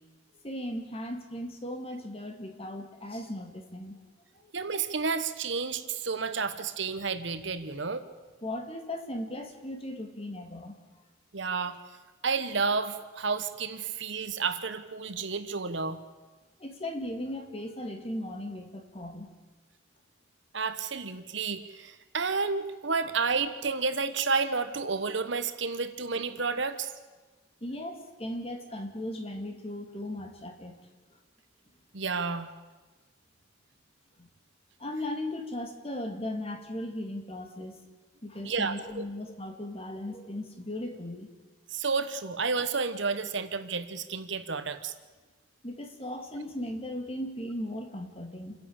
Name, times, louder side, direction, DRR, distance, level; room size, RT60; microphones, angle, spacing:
voice 1, 0.4-4.0 4.4-4.5 8.4-10.7 16.6-19.3 27.6-30.8 34.2-34.3 34.8-37.8 38.2-41.3 45.6-48.5, left 1 dB, 30° left, 4 dB, 2.3 m, -37 dB
voice 2, 4.5-8.0 11.3-11.8 12.2-16.0 20.5-26.9 31.9-32.5 38.4-39.1 41.7-44.9, right 4 dB, 60° right, 11 dB, 1.2 m, -31 dB
28.0 x 11.0 x 8.8 m, 1.3 s
head